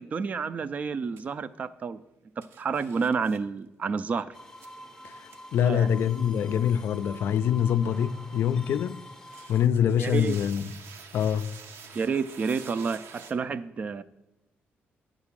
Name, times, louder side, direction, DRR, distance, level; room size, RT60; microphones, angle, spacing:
voice 1, 0.0-2.0 2.4-4.3 5.6-5.9 10.0-10.4 11.9-14.0, right 5 dB, 35° right, 0.3 m, -30 dB
sound 1, 1.2-1.3 2.4-3.4 4.6-4.7 5.3-5.4 9.2-13.3, right 6 dB, 80° right, 0.8 m, -47 dB
sound 2, 4.3-9.7, equal, 10° left, 0.6 m, -46 dB
voice 2, 5.0-9.0 9.5-10.7 11.1-11.5, left 9 dB, 65° left, 0.3 m, -25 dB
9.7 x 3.8 x 7.3 m
cardioid pair, 160°, 4 cm